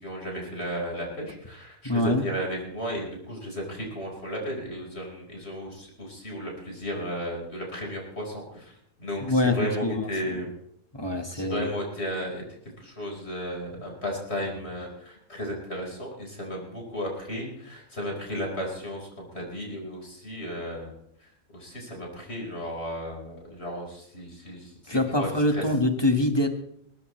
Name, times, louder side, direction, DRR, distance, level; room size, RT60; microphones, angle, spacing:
voice 1, 0.0-8.7 9.0-10.5 11.3-12.4 12.8-20.9 21.2-25.6, equal, 50° left, -1 dB, 5.1 m, -34 dB
voice 2, 1.8-2.2 9.2-10.4 10.9-11.7 24.9-26.5, left 1 dB, 20° left, 5 dB, 1.6 m, -25 dB
21.5 x 18.0 x 3.2 m, 0.73 s
omnidirectional pair, 1.4 m